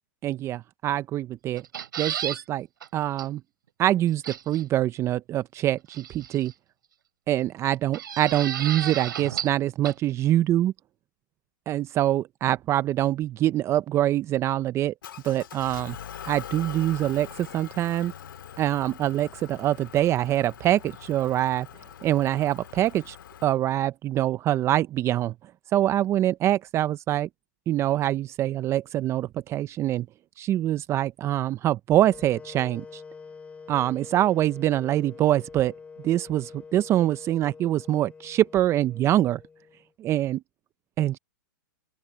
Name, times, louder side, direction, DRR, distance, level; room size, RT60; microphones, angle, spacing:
voice 1, 0.2-1.6 2.0-2.7 2.9-3.4 3.8-6.5 7.3-10.7 11.7-14.9 15.2-16.0 16.2-18.1 18.6-21.7 22.0-23.2 23.4-25.3 25.7-27.3 27.7-30.1 30.4-33.0 33.7-35.7 36.0-39.4 40.0-40.4 41.0-41.2, right 13 dB, 25° right, 0.6 m, -24 dB
sound 1, 1.6-2.4 2.8-2.9 3.2-3.3 4.2-4.6 5.9-6.5 7.9-9.6 9.8-9.9, right 9 dB, 80° right, 3.4 m, -33 dB
Motor vehicle (road) / Engine, 15.0-23.4, left 9 dB, 80° left, 2.1 m, -43 dB
sound 2, 31.9-39.9, left 5 dB, 10° left, 3.7 m, -46 dB
open air
hypercardioid pair, 130°, 11 cm